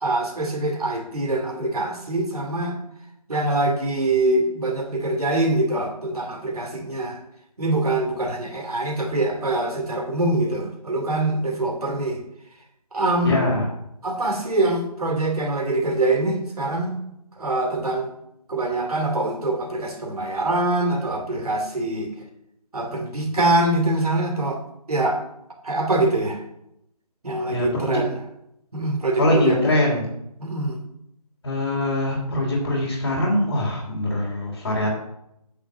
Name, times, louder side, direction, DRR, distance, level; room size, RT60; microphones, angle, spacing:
voice 1, 0.0-2.8 3.3-7.2 7.6-12.2 12.9-13.4 14.0-16.9 17.4-18.1 18.5-22.1 22.7-24.6 24.9-25.2 25.6-26.4 27.2-28.2 28.7-29.5 30.4-30.8, right 2 dB, 65° right, 3 dB, 2.6 m, -24 dB
voice 2, 13.2-13.7 27.4-28.0 29.2-30.1 31.4-34.9, left 1 dB, 45° left, -6 dB, 2.9 m, -23 dB
8.3 x 6.2 x 6.8 m, 0.81 s
figure-of-eight pair, 155°, 20 cm